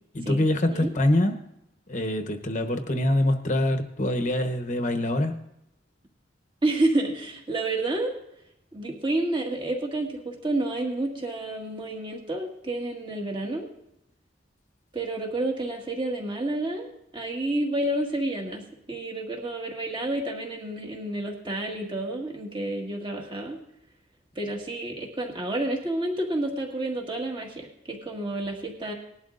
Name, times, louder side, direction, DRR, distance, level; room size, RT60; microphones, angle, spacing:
voice 1, 0.1-1.4 1.9-5.3, left 1 dB, 40° left, 6 dB, 1.0 m, -24 dB
voice 2, 6.6-8.1 8.7-13.7 14.9-16.9 17.1-23.6 24.3-28.9, right 2 dB, 25° right, 0 dB, 1.8 m, -29 dB
19.5 x 12.0 x 2.5 m, 0.79 s
head